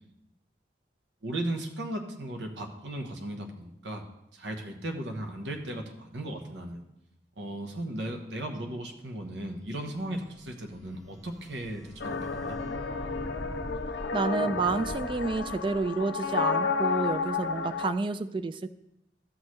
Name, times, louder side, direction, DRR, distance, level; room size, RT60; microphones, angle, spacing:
voice 1, 1.2-4.1 4.3-6.8 7.4-12.6, right 1 dB, 75° right, 4 dB, 1.1 m, -36 dB
sound 1, 9.6-16.0, equal, ahead, 1.5 m, -44 dB
sound 2, 12.0-17.9, left 4 dB, 65° left, 0.5 m, -31 dB
voice 2, 14.1-18.7, right 3 dB, 25° right, 12 dB, 0.3 m, -29 dB
13.0 x 6.3 x 3.2 m, 0.83 s
head